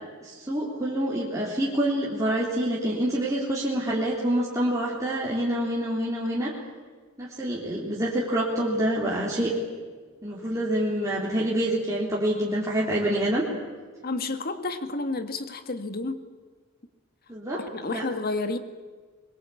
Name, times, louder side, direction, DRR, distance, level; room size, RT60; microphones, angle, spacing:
voice 1, 0.2-6.5 7.2-9.6 10.2-13.4 17.3-17.6 17.9-18.0, right 1 dB, 15° right, -6 dB, 3.6 m, -26 dB
voice 2, 14.0-16.2 17.5-18.6, left 3 dB, 50° left, 9 dB, 1.9 m, -30 dB
23.5 x 22.0 x 8.5 m, 1.5 s
head